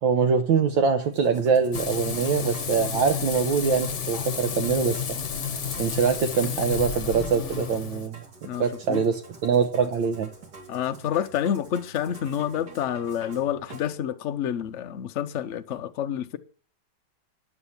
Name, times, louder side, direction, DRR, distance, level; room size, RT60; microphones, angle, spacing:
voice 1, 0.0-5.1 5.8-8.2 8.6-10.3, right 6 dB, 75° right, 1.6 m, -23 dB
Musical instrument, 1.0-13.9, right 4 dB, 55° right, 2.9 m, -46 dB
Frying (food), 1.7-8.1, left 7 dB, 45° left, 1.1 m, -31 dB
voice 2, 8.4-9.0 10.7-16.4, left 9 dB, 80° left, 0.6 m, -28 dB
9.8 x 7.9 x 7.0 m
omnidirectional pair, 2.2 m